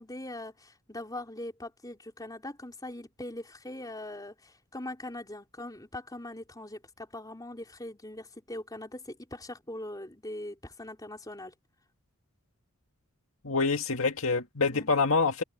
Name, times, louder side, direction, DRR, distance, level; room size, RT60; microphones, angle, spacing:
voice 1, 0.0-11.5 14.7-14.9, left 1 dB, 15° left, 4.2 m, -41 dB
voice 2, 13.4-15.4, left 4 dB, 65° left, 2.1 m, -26 dB
head